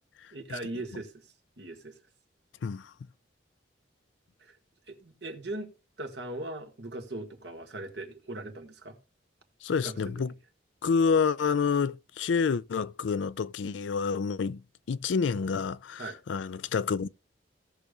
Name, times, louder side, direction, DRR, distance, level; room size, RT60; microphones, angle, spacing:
voice 1, 0.3-1.1 1.6-1.9 4.4-4.5 4.9-5.7 6.0-9.0 9.8-10.3 16.0-16.2, right 2 dB, 65° right, 1.8 m, -39 dB
voice 2, 9.6-10.3 10.8-14.6 14.9-17.1, left 5 dB, 80° left, 0.4 m, -28 dB
17.0 x 6.7 x 2.4 m
head